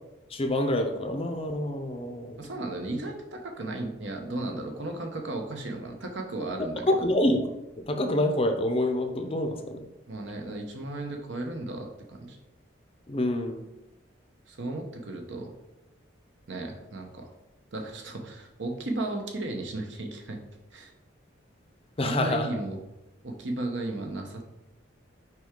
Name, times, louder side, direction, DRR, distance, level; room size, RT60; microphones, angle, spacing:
voice 1, 0.3-2.4 6.9-7.5 7.9-9.9 13.1-13.6 22.0-22.5, left 1 dB, 30° left, 6 dB, 0.5 m, -27 dB
voice 2, 2.4-7.1 10.1-12.4 14.5-15.5 16.5-17.3 17.7-20.4 20.7-20.9 22.0-22.8 23.2-24.4, right 2 dB, 70° right, 3 dB, 0.9 m, -35 dB
5.9 x 4.6 x 3.7 m, 0.97 s
head